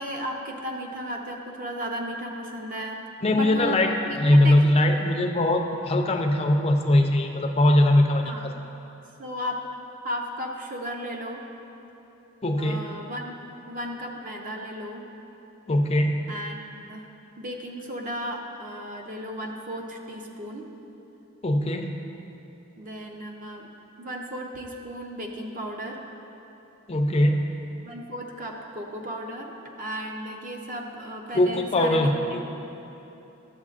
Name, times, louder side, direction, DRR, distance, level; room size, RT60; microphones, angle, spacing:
voice 1, 0.0-3.0 3.3-3.8 4.1-4.6 8.2-8.5 9.2-9.6 10.0-11.4 12.6-13.3 13.7-15.1 16.3-17.1 17.4-20.7 22.8-23.7 24.0-26.0 27.8-32.4, equal, 40° right, 1 dB, 0.7 m, -35 dB
voice 2, 3.2-3.9 4.2-8.5 12.4-12.9 15.7-16.2 21.4-22.0 26.9-27.5 31.3-32.4, left 1 dB, 30° left, 3 dB, 0.4 m, -21 dB
12.0 x 7.6 x 2.4 m, 3.0 s
head